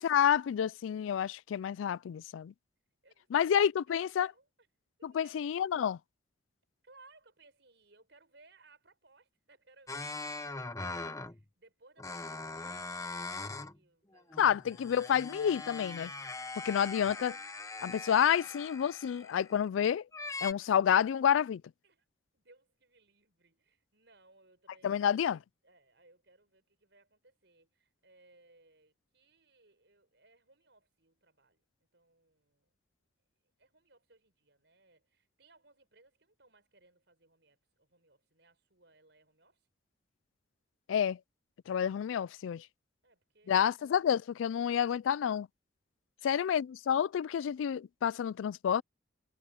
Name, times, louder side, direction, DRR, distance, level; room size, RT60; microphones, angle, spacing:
voice 1, 0.0-2.5 3.3-4.3 5.0-6.0 14.4-16.1 16.6-17.4 17.8-20.0 20.4-21.6 24.8-25.4 40.9-41.2 41.7-42.7 43.5-45.5 46.2-48.8, left 8 dB, 85° left, 0.3 m, -29 dB
voice 2, 3.0-3.6 3.9-4.7 5.0-5.5 6.8-14.8 21.8-22.1 22.3-31.6 31.9-32.8 33.6-39.7 43.0-43.7 46.2-46.4, right 3 dB, 65° right, 5.6 m, -65 dB
sound 1, 9.9-11.4 12.0-13.8 14.1-19.7 20.1-20.5, left 3 dB, 15° left, 0.8 m, -41 dB
head